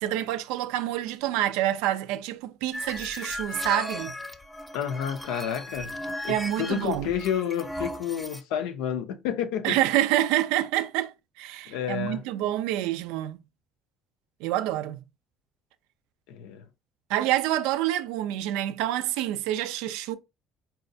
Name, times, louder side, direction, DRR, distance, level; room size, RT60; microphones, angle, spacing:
voice 1, 0.0-4.1 6.3-7.1 9.6-13.4 14.4-15.0 17.1-20.2, right 13 dB, 75° right, 0.3 m, -27 dB
sound 1, 2.7-8.4, left 1 dB, 10° left, 0.6 m, -36 dB
voice 2, 4.7-5.9 6.2-9.8 11.7-12.2 16.3-16.6, left 9 dB, 75° left, 0.4 m, -30 dB
4.0 x 2.2 x 2.6 m
hypercardioid pair, 60°, 0 cm